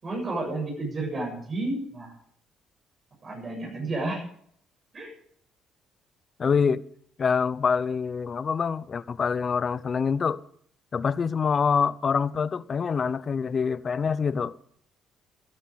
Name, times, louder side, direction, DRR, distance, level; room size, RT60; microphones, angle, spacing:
voice 1, 0.0-2.1 3.2-4.3 4.9-5.1, right 2 dB, 40° right, 7.5 m, -31 dB
voice 2, 6.4-6.8 7.2-10.4 10.9-14.6, left 6 dB, 40° left, 0.8 m, -25 dB
17.0 x 11.0 x 5.1 m
cardioid pair, 95°, 0 cm